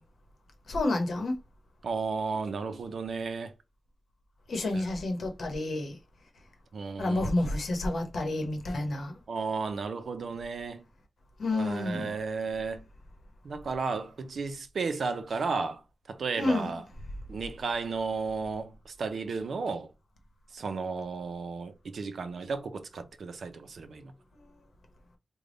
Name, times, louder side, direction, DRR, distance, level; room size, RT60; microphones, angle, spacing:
voice 1, 0.7-1.3 4.5-6.0 7.0-9.1 11.4-12.1 16.4-16.8, left 2 dB, 60° left, 0.9 m, -29 dB
voice 2, 1.8-3.5 4.7-4.8 6.7-7.3 9.3-10.8 11.5-12.8 13.4-15.8 16.1-16.8 17.3-19.9 20.5-24.1, right 4 dB, 65° right, 0.5 m, -33 dB
3.4 x 2.2 x 3.8 m
wide cardioid pair, 165°, 0 cm